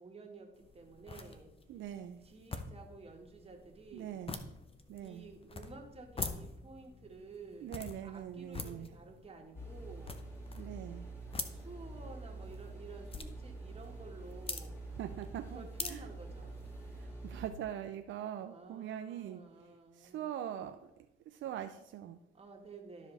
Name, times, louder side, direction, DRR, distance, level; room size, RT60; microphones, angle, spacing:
voice 1, 0.0-1.5 2.2-4.2 5.0-10.2 11.4-14.8 15.4-16.6 18.4-20.3 22.3-23.1, right 3 dB, 30° right, 1 dB, 1.9 m, -52 dB
sound 1, 0.5-17.0, left 4 dB, 30° left, 0.9 m, -47 dB
voice 2, 1.7-2.2 3.9-4.4 4.9-5.3 7.6-8.9 10.6-11.1 15.0-16.1 16.9-19.4 19.9-20.9 21.3-22.2, right 10 dB, 75° right, 7 dB, 0.5 m, -42 dB
sound 2, 9.5-17.5, right 2 dB, 15° left, 2.9 m, -46 dB
12.0 x 5.1 x 4.1 m, 0.87 s
cardioid pair, 90°, 20 cm